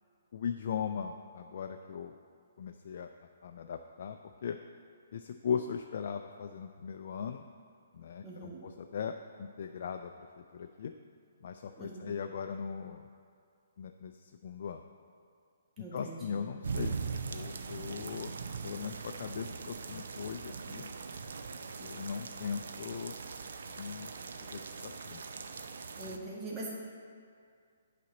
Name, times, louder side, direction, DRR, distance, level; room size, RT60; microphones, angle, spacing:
voice 1, 0.3-2.1 2.6-4.6 5.1-7.5 7.9-10.9 11.4-13.1 13.8-14.8 15.8-18.3 18.6-20.9 21.8-23.2 23.8-24.1 24.4-25.2, left 7 dB, 55° left, 5 dB, 0.4 m, -39 dB
voice 2, 8.2-8.6 11.8-12.1 15.8-16.5 25.9-26.7, right 2 dB, 20° right, -6 dB, 1.6 m, -43 dB
sound 1, 16.6-26.2, right 5 dB, 70° right, 0.5 m, -41 dB
8.3 x 4.2 x 6.0 m, 2.3 s
hypercardioid pair, 140°, 0 cm